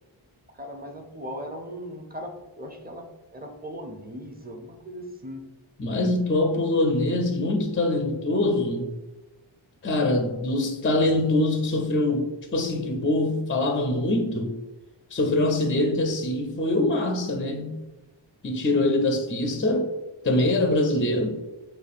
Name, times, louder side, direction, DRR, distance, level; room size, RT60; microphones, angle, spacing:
voice 1, 0.5-5.6, equal, 20° right, 0.6 m, -38 dB
voice 2, 5.8-8.9 9.8-14.5 15.1-17.8 18.4-19.9 20.2-21.4, left 2 dB, 25° left, 0.4 m, -24 dB
4.6 x 2.3 x 2.5 m
wide cardioid pair, 45°, 50 cm